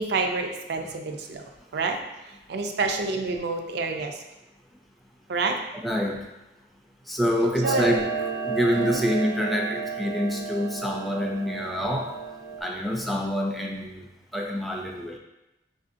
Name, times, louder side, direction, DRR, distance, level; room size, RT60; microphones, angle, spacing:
voice 1, 0.0-1.4 1.7-4.2 5.3-5.6 7.6-8.0 8.7-9.0, right 3 dB, 65° right, 4 dB, 0.4 m, -28 dB
voice 2, 5.8-6.2 7.1-8.0 8.5-12.1 12.6-14.1 14.3-15.2, equal, ahead, -1 dB, 0.4 m, -26 dB
Clock, 7.6-12.6, right 5 dB, 85° right, 0.8 m, -32 dB
4.8 x 2.6 x 2.5 m, 0.96 s
head